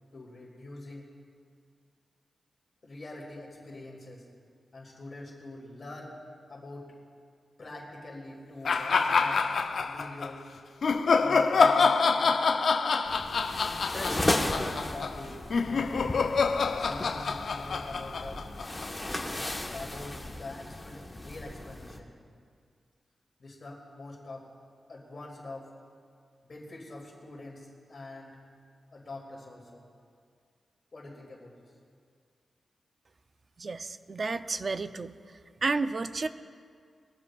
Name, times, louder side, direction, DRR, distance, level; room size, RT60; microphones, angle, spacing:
voice 1, 0.1-1.1 2.8-4.3 4.7-6.2 6.5-6.9 7.6-9.5 9.8-10.5 11.2-12.4 13.6-16.2 16.8-18.4 19.3-22.1 23.4-24.5 24.9-25.7 26.4-28.4 28.9-29.9 30.9-31.7, left 2 dB, 45° left, -3 dB, 2.6 m, -44 dB
sound 1, 8.6-10.3 10.8-19.1, left 4 dB, 70° left, 0.6 m, -26 dB
sound 2, 13.1-22.0, left 1 dB, 15° left, 1.2 m, -35 dB
voice 2, 33.6-35.2 35.6-36.3, right 3 dB, 45° right, 10 dB, 0.5 m, -31 dB
22.0 x 14.5 x 2.4 m, 2.1 s
wide cardioid pair, 95°, 0 cm